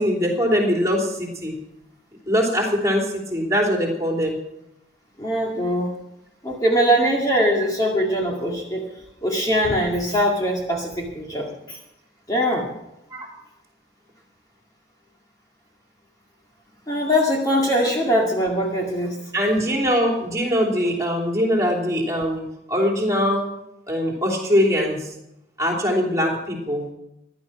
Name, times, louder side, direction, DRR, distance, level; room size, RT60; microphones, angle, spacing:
voice 1, 0.0-1.6 2.3-4.4 13.1-13.3 17.8-17.9 19.3-23.4 23.9-25.1 25.6-26.8, equal, 20° right, 0 dB, 3.3 m, -22 dB
voice 2, 5.2-5.9 6.4-8.8 9.2-11.8 12.3-12.7 16.9-19.2, equal, 20° left, -2 dB, 2.1 m, -22 dB
15.5 x 11.5 x 5.9 m, 0.85 s
head